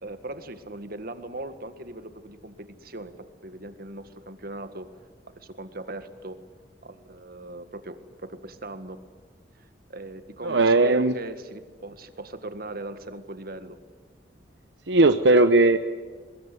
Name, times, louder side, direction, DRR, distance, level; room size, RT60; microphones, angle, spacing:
voice 1, 0.0-4.9 5.3-6.4 6.8-9.0 9.6-13.8, right 2 dB, 60° right, 10 dB, 1.9 m, -39 dB
voice 2, 10.4-11.1 14.9-15.8, right 2 dB, 85° right, 9 dB, 1.0 m, -18 dB
23.5 x 21.0 x 10.0 m, 1.5 s
head